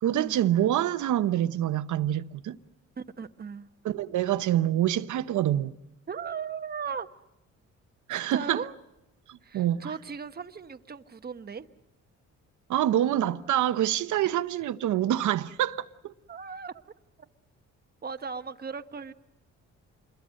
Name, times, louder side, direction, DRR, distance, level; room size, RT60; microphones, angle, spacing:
voice 1, 0.0-2.6 3.8-5.8 8.1-8.7 9.3-9.9 12.7-16.1, right 12 dB, 75° right, 1.0 m, -26 dB
voice 2, 3.0-3.7 6.1-7.1 8.1-8.7 9.4-11.7 16.3-16.7 17.2-17.3 18.0-19.1, right 6 dB, 30° right, 1.1 m, -37 dB
28.0 x 22.0 x 6.4 m
cardioid pair, 90°, 30 cm